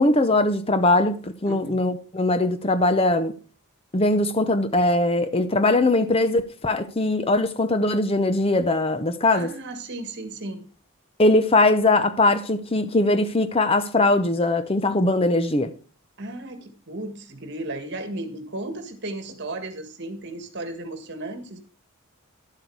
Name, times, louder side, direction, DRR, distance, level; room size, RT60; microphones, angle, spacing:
voice 1, 0.0-3.3 3.9-9.5 11.2-15.7, left 2 dB, 25° left, 0.6 m, -21 dB
voice 2, 1.5-1.8 9.3-10.7 16.2-21.6, right 2 dB, 50° right, 1.8 m, -35 dB
11.5 x 7.9 x 4.7 m
head